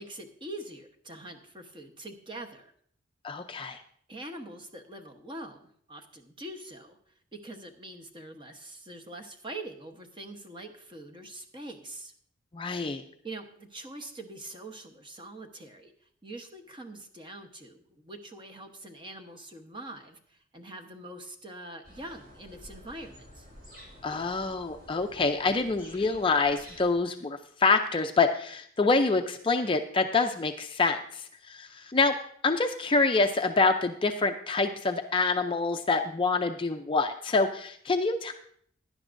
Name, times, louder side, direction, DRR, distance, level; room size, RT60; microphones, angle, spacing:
voice 1, 0.0-2.7 4.1-7.0 7.3-12.1 13.2-15.9 16.2-23.5, right 1 dB, 25° right, 4 dB, 1.0 m, -44 dB
voice 2, 3.2-3.8 12.5-13.0 24.0-32.2 32.4-38.3, left 3 dB, 25° left, 6 dB, 0.4 m, -26 dB
sound 1, 21.8-27.0, equal, 50° right, 5.7 m, -51 dB
16.5 x 10.5 x 2.6 m, 0.62 s
head